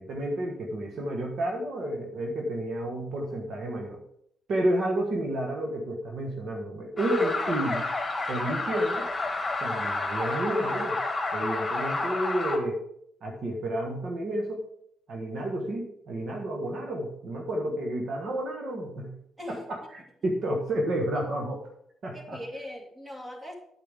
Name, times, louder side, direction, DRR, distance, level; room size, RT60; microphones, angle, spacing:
voice 1, 0.0-4.0 4.5-7.9 8.3-9.1 9.6-11.0 11.3-12.8 13.2-14.7 15.1-19.2 19.5-21.7 22.0-22.4, right 1 dB, 60° right, 1 dB, 1.5 m, -30 dB
sound 1, 7.0-12.6, left 3 dB, 20° left, 1.8 m, -30 dB
voice 2, 22.1-23.5, left 1 dB, 20° right, 1 dB, 2.3 m, -40 dB
8.6 x 8.1 x 3.6 m, 0.71 s
cardioid pair, 90°, 0 cm